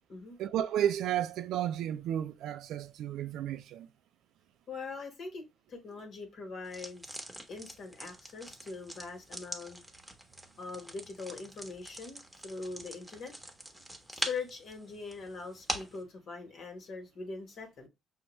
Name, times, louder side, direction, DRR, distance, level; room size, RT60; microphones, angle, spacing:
voice 1, 0.4-3.9, right 10 dB, 85° right, 0.3 m, -32 dB
voice 2, 4.7-7.1 7.5-9.8 10.6-13.3 14.1-17.9, left 4 dB, 65° left, 1.2 m, -42 dB
sound 1, 6.6-16.0, right 1 dB, 10° right, 0.8 m, -43 dB
5.4 x 2.2 x 3.0 m
cardioid pair, 90°, 0 cm